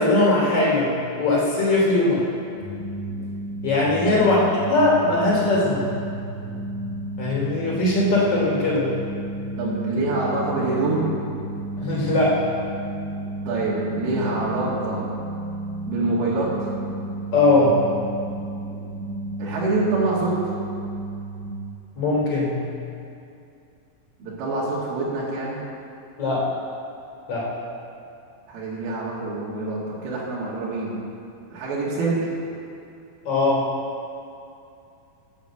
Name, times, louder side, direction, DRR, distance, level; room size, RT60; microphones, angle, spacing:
voice 1, 0.0-2.2 3.6-4.4 4.7-5.9 7.2-8.9 11.8-12.4 17.3-17.8 22.0-22.6 26.2-26.5 27.3-27.5 33.2-33.7, left 2 dB, 40° left, -5 dB, 3.9 m, -20 dB
sound 1, 2.6-21.5, right 2 dB, 70° left, 3.0 m, -32 dB
voice 2, 4.1-4.5 9.6-11.1 13.5-15.0 15.8-16.7 19.4-20.5 24.2-25.6 28.5-31.0 31.5-32.3, right 2 dB, 75° right, -6 dB, 3.9 m, -25 dB
12.0 x 8.3 x 7.9 m, 2.6 s
omnidirectional pair, 4.5 m